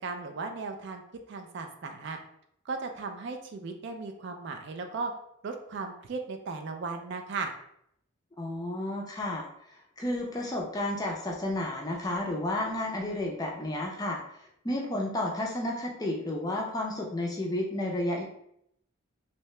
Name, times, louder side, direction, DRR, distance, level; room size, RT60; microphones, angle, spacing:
voice 1, 0.0-1.0 1.3-2.2 2.7-5.1 5.4-7.5, right 4 dB, 55° right, 5 dB, 0.3 m, -36 dB
voice 2, 8.4-14.4 14.6-18.2, left 1 dB, 15° left, -1 dB, 0.4 m, -32 dB
2.7 x 2.2 x 3.0 m, 0.73 s
head